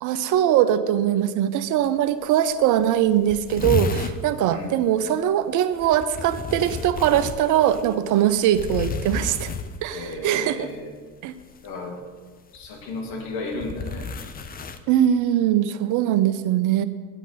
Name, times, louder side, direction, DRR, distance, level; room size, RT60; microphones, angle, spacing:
voice 1, 0.0-9.5 9.8-10.7 11.2-11.3 14.9-16.8, right 11 dB, 45° right, 13 dB, 0.7 m, -21 dB
sound 1, 1.8-1.9 2.2-2.3 2.6-2.7 2.9-4.2 5.7-10.1 11.4-11.7 12.5-14.8, left 4 dB, 20° left, 0.7 m, -31 dB
voice 2, 9.9-11.0 11.6-12.0 12.5-14.1, left 2 dB, 55° left, 1 dB, 2.6 m, -34 dB
9.1 x 7.3 x 5.8 m, 1.5 s
hypercardioid pair, 80°, 44 cm